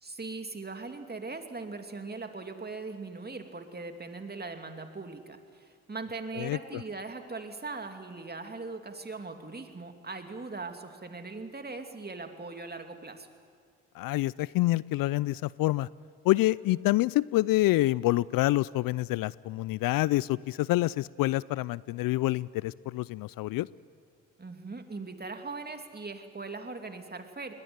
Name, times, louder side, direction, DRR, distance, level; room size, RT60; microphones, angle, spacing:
voice 1, 0.0-13.3 24.4-27.5, right 3 dB, 25° right, 6 dB, 2.7 m, -40 dB
voice 2, 14.0-15.9 16.2-23.7, left 17 dB, 65° left, 22 dB, 0.5 m, -27 dB
20.5 x 18.0 x 9.5 m, 2.1 s
hypercardioid pair, 50°, 36 cm